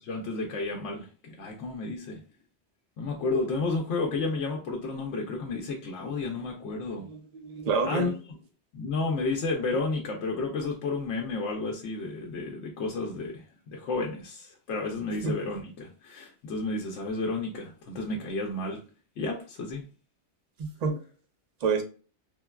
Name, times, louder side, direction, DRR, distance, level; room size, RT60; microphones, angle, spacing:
voice 1, 0.0-2.2 3.0-7.0 7.8-8.1 8.7-18.8 19.2-19.8, left 3 dB, 85° left, 0.9 m, -32 dB
voice 2, 7.1-8.1 15.2-15.3 20.6-21.0 21.6-21.8, right 5 dB, 50° right, 0.5 m, -28 dB
3.3 x 2.2 x 2.2 m
omnidirectional pair, 1.2 m